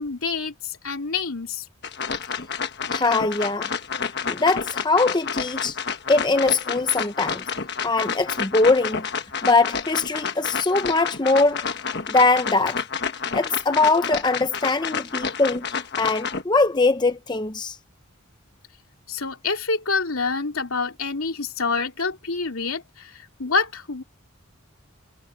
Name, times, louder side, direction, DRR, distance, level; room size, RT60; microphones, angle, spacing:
voice 1, 0.0-1.7 19.1-24.0, left 4 dB, 80° left, 3.0 m, -27 dB
sound 1, 1.8-16.4, left 6 dB, 50° left, 1.3 m, -29 dB
voice 2, 2.9-3.7 4.3-5.8 6.1-7.5 7.8-9.1 9.4-11.7 12.1-12.8 13.3-17.8, left 3 dB, 20° left, 0.7 m, -21 dB
head